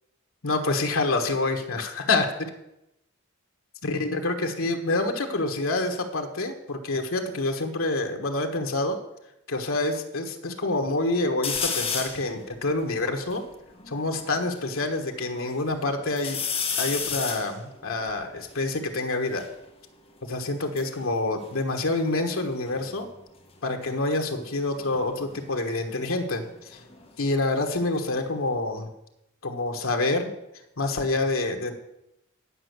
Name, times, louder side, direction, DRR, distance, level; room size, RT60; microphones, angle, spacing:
voice 1, 0.4-2.3 3.8-9.0 9.5-13.4 13.9-16.4 16.8-19.5 20.2-23.1 23.6-26.8 27.2-28.9 29.4-30.3 30.8-31.7, left 2 dB, 75° left, 4 dB, 1.3 m, -27 dB
sound 1, 11.4-12.3 12.8-12.9 13.1-14.7 15.2-15.8 16.2-19.5 20.5-22.4 22.7-23.1 24.7-27.3 27.7-28.5, left 6 dB, 25° left, 1.3 m, -34 dB
9.8 x 5.3 x 8.0 m, 0.86 s
head